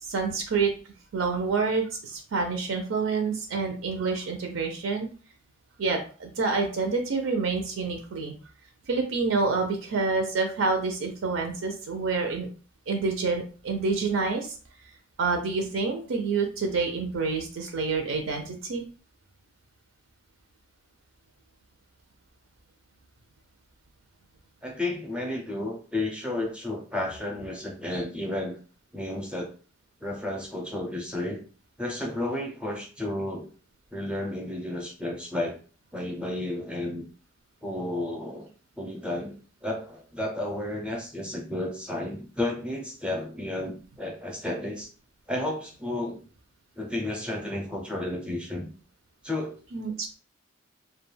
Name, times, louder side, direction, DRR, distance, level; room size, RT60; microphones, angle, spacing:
voice 1, 0.0-0.7 1.1-5.1 5.8-8.3 8.9-12.5 12.9-14.6 15.2-18.8 49.7-50.1, right 4 dB, 75° right, 4 dB, 0.5 m, -27 dB
voice 2, 24.6-28.6 28.9-29.5 30.0-31.4 31.8-33.5 33.9-35.6 35.9-37.1 37.6-38.5 38.8-44.9 45.3-46.2 46.8-48.7 49.2-49.6, left 1 dB, 5° right, 0 dB, 0.5 m, -32 dB
2.3 x 2.2 x 3.1 m, 0.39 s
head